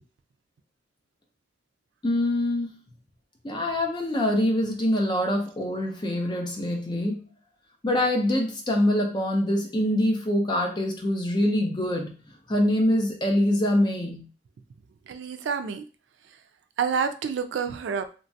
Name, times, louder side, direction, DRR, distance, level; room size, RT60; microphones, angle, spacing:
voice 1, 2.0-2.8 3.4-7.2 7.8-12.1 12.5-14.3, left 1 dB, 25° left, 1 dB, 0.6 m, -24 dB
voice 2, 15.1-15.8 16.8-18.1, right 6 dB, 75° right, 9 dB, 0.3 m, -28 dB
2.8 x 2.2 x 2.7 m, 0.35 s
head